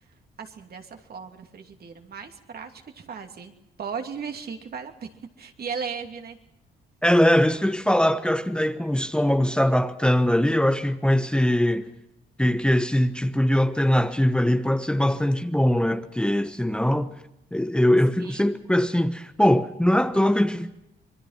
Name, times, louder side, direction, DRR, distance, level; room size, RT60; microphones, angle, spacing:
voice 1, 0.4-3.5 3.8-5.1 5.4-6.4 18.2-18.5, right 6 dB, 50° right, 2.9 m, -36 dB
voice 2, 7.0-11.9 12.4-17.1 17.5-20.7, left 1 dB, 5° left, 1.2 m, -21 dB
26.5 x 21.5 x 5.9 m
cardioid pair, 90°, 20 cm